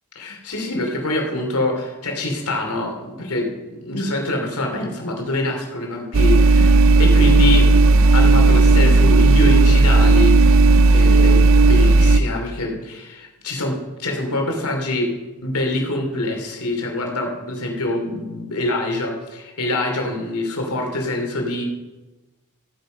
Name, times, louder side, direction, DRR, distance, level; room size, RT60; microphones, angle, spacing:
voice 1, 0.1-7.7 8.1-10.6 10.9-15.1 15.4-21.6, left 2 dB, 90° left, 2 dB, 3.2 m, -25 dB
sound 1, 6.1-12.2, right 3 dB, 60° right, 0.5 m, -13 dB
15.0 x 9.2 x 5.3 m, 1.2 s
head